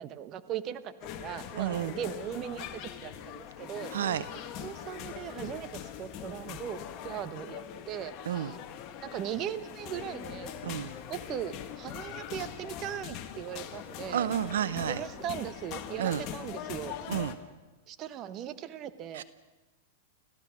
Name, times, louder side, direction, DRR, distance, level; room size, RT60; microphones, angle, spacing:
voice 1, 0.0-3.9 4.6-6.8 7.0-8.6 9.0-10.5 11.1-14.3 14.9-16.9 17.9-19.2, right 10 dB, 35° right, 13 dB, 1.0 m, -39 dB
sound 1, 1.0-17.3, left 10 dB, 40° left, 1.7 m, -42 dB
voice 2, 1.6-1.9 3.9-4.2 8.3-8.5 10.6-10.9 14.1-15.0 16.0-16.2 17.1-17.4 19.1-19.2, right 10 dB, 80° right, 16 dB, 0.7 m, -30 dB
29.5 x 15.0 x 6.3 m, 1.2 s
hypercardioid pair, 130°, 0 cm